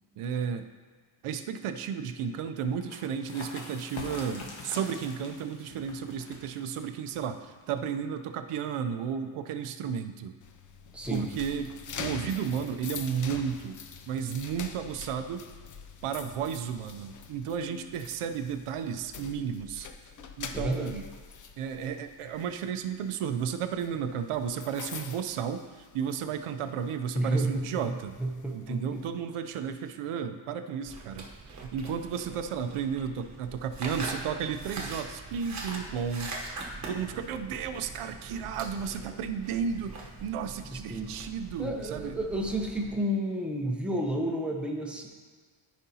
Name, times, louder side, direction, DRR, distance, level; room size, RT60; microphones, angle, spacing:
voice 1, 0.2-0.7 1.2-7.4 7.7-10.3 11.1-13.8 14.1-15.4 16.0-19.9 20.4-21.1 21.6-28.2 28.5-42.2, right 7 dB, 90° right, 8 dB, 0.6 m, -33 dB
sound 1, 2.7-8.1, left 2 dB, 70° left, 1.4 m, -45 dB
sound 2, 10.4-26.3 26.7-26.9 27.4-29.1, left 6 dB, 40° left, 0.4 m, -44 dB
voice 2, 10.9-11.3 20.5-21.0 27.1-27.7 28.2-29.0 40.7-41.1 41.6-45.1, right 1 dB, ahead, -1 dB, 0.7 m, -31 dB
sound 3, 30.9-43.0, right 2 dB, 35° right, 1.1 m, -42 dB
13.5 x 5.1 x 2.8 m, 1.5 s
wide cardioid pair, 170°, 50 cm